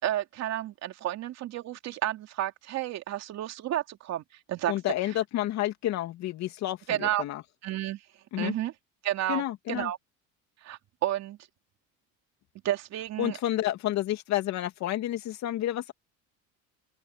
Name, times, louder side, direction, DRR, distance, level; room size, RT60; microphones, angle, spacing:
voice 1, 0.0-4.7 6.9-7.2 7.6-8.0 8.4-8.7 9.0-9.4 9.7-10.0 10.6-11.4 12.6-13.4, right 13 dB, 60° right, 3.1 m, -31 dB
voice 2, 4.7-7.4 8.3-8.5 9.3-9.9 13.2-15.9, left 13 dB, 60° left, 2.9 m, -30 dB
open air
supercardioid pair, 110°, 31 cm